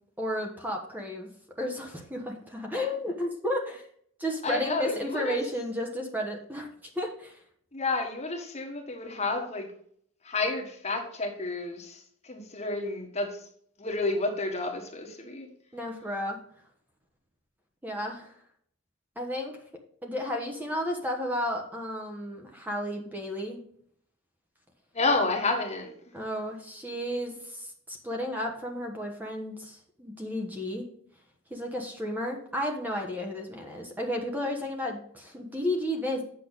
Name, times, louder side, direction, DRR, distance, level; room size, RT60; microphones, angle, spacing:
voice 1, 0.2-1.3 1.6-3.9 4.2-6.7 6.9-7.4 15.7-16.4 17.8-18.3 19.2-19.5 20.0-23.6 26.1-30.8 31.5-36.2, left 1 dB, 10° right, 1 dB, 1.1 m, -33 dB
voice 2, 4.4-5.4 7.7-9.7 10.2-13.3 13.8-15.5 24.9-25.9, left 3 dB, 30° left, 3 dB, 1.5 m, -30 dB
8.3 x 6.6 x 4.0 m, 0.63 s
head